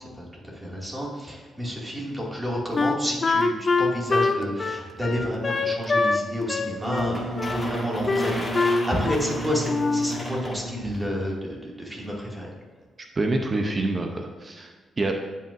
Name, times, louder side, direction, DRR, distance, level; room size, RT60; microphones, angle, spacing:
voice 1, 0.4-7.3 7.5-12.5, equal, 10° right, -3 dB, 2.2 m, -30 dB
Wind instrument woodwind instrument, 2.8-6.2 6.5-7.6 8.1-9.4 9.7-10.1, left 3 dB, 35° left, 0.5 m, -24 dB
Wind instrument woodwind instrument 2, 6.7-11.3, right 1 dB, 70° right, 2.4 m, -33 dB
sound 1, 7.0-11.1, left 1 dB, 15° left, 1.7 m, -36 dB
voice 2, 13.2-15.1, right 2 dB, 30° right, 3 dB, 0.7 m, -27 dB
16.5 x 5.5 x 2.6 m, 1.5 s
cardioid pair, 115°, 0 cm